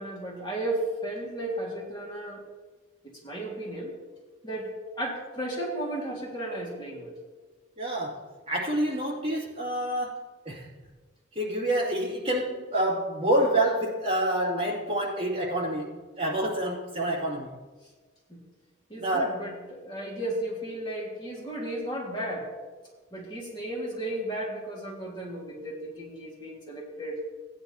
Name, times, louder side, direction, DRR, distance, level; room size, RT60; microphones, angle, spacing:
voice 1, 0.0-2.4 3.0-3.9 4.4-7.1 18.3-18.4 18.9-22.5 23.1-27.2, right 1 dB, 20° left, -3 dB, 1.9 m, -34 dB
voice 2, 7.8-8.2 8.5-10.2 10.4-10.7 11.3-17.6 18.9-19.4, right 1 dB, 30° right, -5 dB, 2.4 m, -27 dB
16.5 x 9.7 x 2.8 m, 1.3 s
head